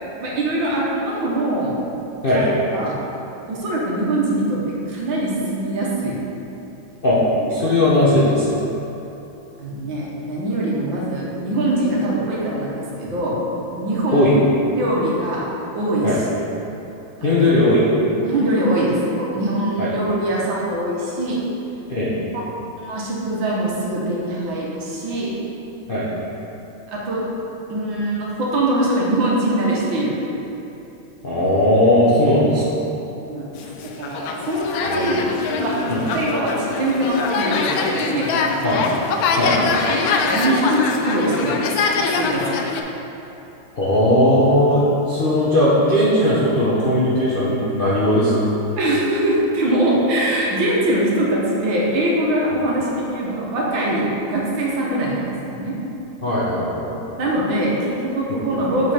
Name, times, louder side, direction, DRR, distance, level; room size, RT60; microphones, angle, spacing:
voice 1, 0.2-1.7 2.3-3.0 3.5-4.6 4.9-6.2 7.6-7.7 9.6-13.4 13.7-14.4 14.7-15.4 15.7-16.1 17.2-17.5 18.2-21.4 22.8-25.3 26.9-27.2 27.7-30.2 33.2-33.5 33.8-35.1 35.6-35.8 36.1-38.8 39.5-39.6 40.3-41.7 42.0-42.7 48.8-55.8 57.2-58.9, right 1 dB, 75° right, -5 dB, 1.9 m, -22 dB
voice 2, 7.5-8.6 14.1-14.4 16.0-16.2 17.2-17.9 19.8-19.9 21.9-22.1 25.9-26.1 31.2-32.8 34.9-35.2 35.9-36.0 38.6-38.8 39.4-39.7 43.8-48.5 56.2-57.0 58.3-58.5, left 1 dB, 45° left, -9 dB, 0.7 m, -18 dB
sound 1, 33.6-42.8, left 4 dB, 85° left, 0.8 m, -23 dB
7.0 x 5.1 x 4.3 m, 3.0 s
omnidirectional pair, 2.2 m